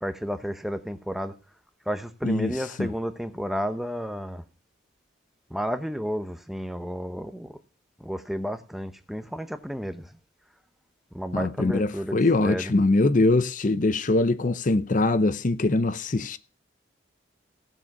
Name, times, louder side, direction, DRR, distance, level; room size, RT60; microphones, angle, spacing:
voice 1, 0.0-1.3 1.9-4.4 5.5-7.6 8.0-10.1 11.1-12.7, equal, ahead, 0.9 m, -32 dB
voice 2, 11.3-16.4, left 2 dB, 40° left, 0.6 m, -23 dB
16.5 x 7.1 x 6.0 m
head